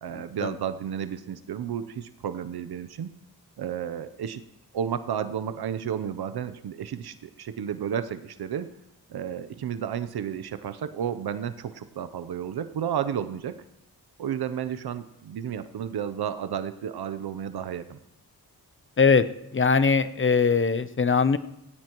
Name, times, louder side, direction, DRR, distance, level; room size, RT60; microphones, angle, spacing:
voice 1, 0.0-3.1 3.6-4.4 4.7-8.7 9.1-13.6 14.2-18.0, right 8 dB, 80° right, 11 dB, 0.7 m, -32 dB
voice 2, 19.5-21.4, left 5 dB, 35° left, 13 dB, 0.6 m, -21 dB
18.0 x 17.5 x 3.0 m, 0.87 s
wide cardioid pair, 95°, 38 cm